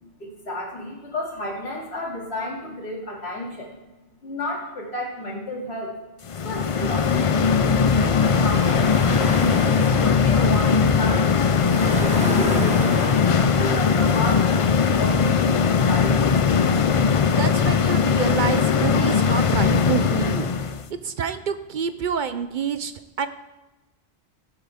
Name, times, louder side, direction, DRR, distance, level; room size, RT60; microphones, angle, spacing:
voice 1, 0.0-3.7 4.2-5.9 6.4-7.5 7.8-11.3 11.9-16.3, left 1 dB, 85° left, -3 dB, 2.7 m, -32 dB
sound 1, 6.3-20.8, left 6 dB, 45° left, 0.4 m, -20 dB
sound 2, 8.0-17.2, right 1 dB, 5° right, 1.1 m, -34 dB
voice 2, 17.4-20.5 21.0-22.9 23.2-23.3, right 7 dB, 60° right, 11 dB, 0.6 m, -27 dB
16.5 x 8.0 x 3.5 m, 1.1 s
omnidirectional pair, 1.1 m